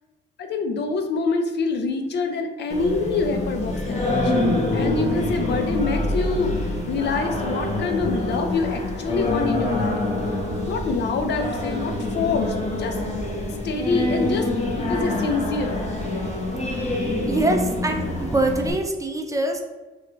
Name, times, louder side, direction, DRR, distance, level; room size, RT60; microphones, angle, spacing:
voice 1, 0.4-4.3 4.7-6.6 6.9-10.0 10.7-13.0 13.6-14.5 14.8-15.9, left 4 dB, 60° left, 5 dB, 0.5 m, -26 dB
Singing, 2.7-18.7, left 2 dB, 35° left, 0.9 m, -26 dB
voice 2, 17.3-19.6, right 2 dB, 15° right, 3 dB, 0.5 m, -24 dB
3.4 x 2.3 x 3.4 m, 1.2 s
cardioid pair, 90°, 20 cm